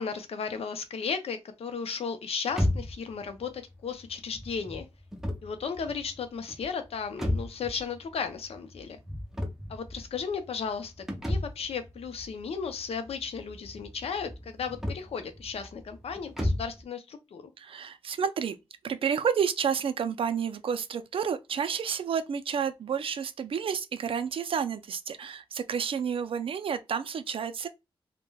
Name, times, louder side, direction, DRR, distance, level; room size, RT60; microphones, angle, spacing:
voice 1, 0.0-4.9 5.4-9.0 9.7-10.9 11.3-17.4, left 6 dB, 80° left, 0.5 m, -35 dB
sound 1, 2.5-16.8, left 1 dB, 5° right, 0.5 m, -35 dB
voice 2, 17.6-18.6 18.8-27.7, right 7 dB, 65° right, 0.3 m, -30 dB
3.1 x 2.1 x 2.2 m
wide cardioid pair, 135°, 10 cm